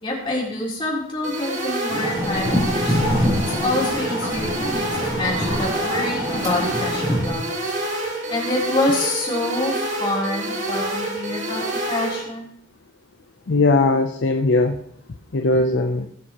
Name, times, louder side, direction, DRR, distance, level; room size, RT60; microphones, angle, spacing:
voice 1, 0.0-7.7 8.3-9.7 10.0-12.5, left 2 dB, 25° left, -5 dB, 3.4 m, -27 dB
sound 1, 1.2-12.2, right 1 dB, 65° right, 2.7 m, -27 dB
sound 2, 1.9-7.3, equal, 15° right, 3.3 m, -25 dB
voice 2, 13.5-14.8 15.3-16.1, left 3 dB, 60° left, 5 dB, 0.6 m, -19 dB
17.5 x 7.1 x 2.9 m, 0.73 s
head